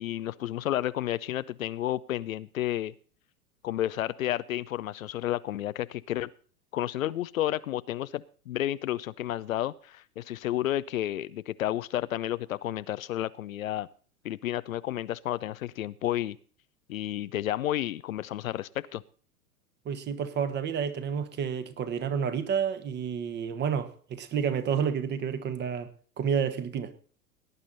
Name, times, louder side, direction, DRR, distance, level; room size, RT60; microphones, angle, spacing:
voice 1, 0.0-2.9 3.6-6.3 6.7-13.9 14.2-16.4 16.9-19.0, left 13 dB, 60° left, 0.6 m, -31 dB
voice 2, 19.8-25.9 26.2-26.9, right 7 dB, 25° right, 1.3 m, -30 dB
18.0 x 9.9 x 4.1 m
figure-of-eight pair, 100°, 46 cm